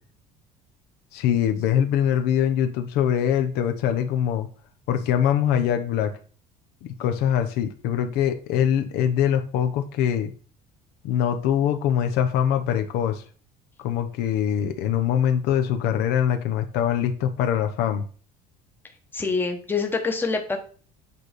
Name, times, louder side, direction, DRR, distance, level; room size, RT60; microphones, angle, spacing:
voice 1, 1.1-4.5 4.9-6.1 6.8-10.3 11.0-13.2 13.8-18.0, left 9 dB, 70° left, 7 dB, 1.0 m, -23 dB
voice 2, 19.1-20.6, left 4 dB, 10° left, 4 dB, 1.1 m, -25 dB
8.9 x 4.2 x 5.0 m, 0.40 s
cardioid pair, 140°, 17 cm